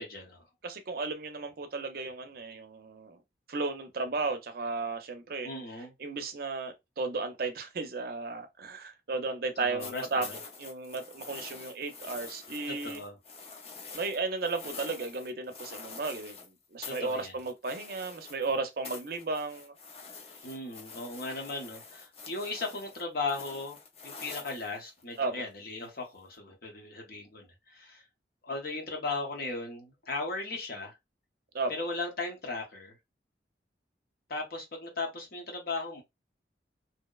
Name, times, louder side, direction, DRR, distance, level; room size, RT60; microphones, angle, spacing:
voice 1, 0.0-0.5 5.4-5.9 9.6-10.4 12.7-13.2 16.8-17.4 20.4-23.8 24.0-28.0 28.4-31.0 31.7-33.0 34.3-36.0, left 3 dB, 55° left, 0.8 m, -37 dB
voice 2, 0.6-3.2 3.5-5.5 6.0-10.3 10.6-13.0 13.9-16.4 16.7-19.7 25.2-25.4 31.5-31.7, right 3 dB, 55° right, 0.5 m, -34 dB
sound 1, 9.8-16.5 16.8-18.6 18.8-25.2 26.3-26.4, left 4 dB, 35° left, 0.4 m, -46 dB
2.7 x 2.0 x 2.3 m
head